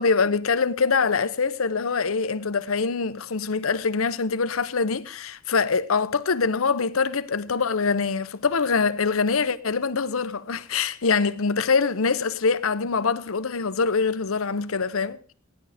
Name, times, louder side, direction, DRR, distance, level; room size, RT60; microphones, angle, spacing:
voice 1, 0.0-15.2, left 5 dB, 85° left, 0.8 m, -24 dB
17.0 x 10.5 x 5.0 m
head